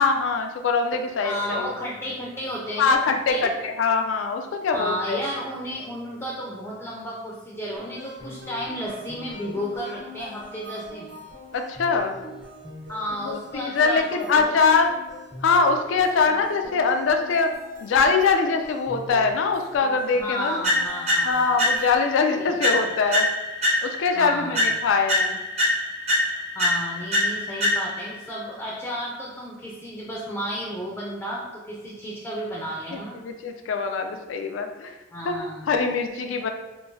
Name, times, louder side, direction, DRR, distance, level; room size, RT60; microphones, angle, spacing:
voice 1, 0.0-1.7 2.8-5.2 11.5-12.1 13.3-14.9 15.4-17.5 17.8-20.6 21.3-23.3 23.8-25.4 33.2-34.9 35.2-35.4 35.7-36.5, left 4 dB, 80° left, 5 dB, 0.3 m, -23 dB
voice 2, 1.2-3.5 4.7-11.1 12.9-14.5 20.1-21.6 22.4-22.8 24.2-24.6 26.6-33.2 35.1-35.8, equal, 10° left, -4 dB, 0.4 m, -32 dB
sound 1, 7.8-22.5, left 2 dB, 65° right, 1.2 m, -43 dB
sound 2, 20.6-22.1 22.6-24.2 24.5-28.1, left 1 dB, 35° right, 0.7 m, -24 dB
3.7 x 2.6 x 2.6 m, 1.1 s
head